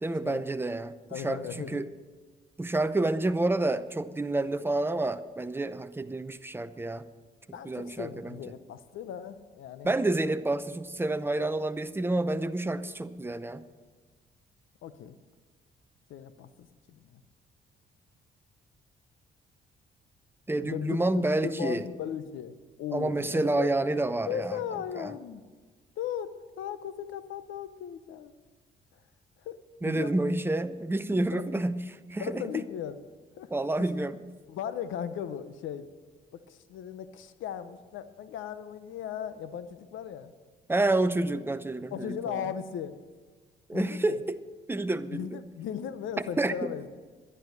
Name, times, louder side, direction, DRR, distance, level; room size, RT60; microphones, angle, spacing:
voice 1, 0.0-1.9 2.6-7.1 7.6-8.4 9.8-13.6 20.5-21.8 22.9-24.6 25.0-25.1 29.8-31.8 32.1-32.4 33.5-34.2 40.7-42.4 43.7-44.4 44.7-45.3 46.4-46.7, right 2 dB, 10° right, 11 dB, 0.7 m, -29 dB
voice 2, 1.1-1.9 7.5-9.9 14.8-15.1 16.1-17.2 20.6-22.5 22.8-23.7 24.3-25.4 26.0-28.3 29.4-29.6 29.8-30.3 31.3-31.4 32.2-33.0 33.4-33.5 34.5-35.9 36.3-40.3 41.9-43.0 43.7-44.2 45.1-46.9, left 9 dB, 80° left, 12 dB, 0.8 m, -37 dB
11.0 x 11.0 x 6.4 m, 1.4 s
cardioid pair, 90°, 20 cm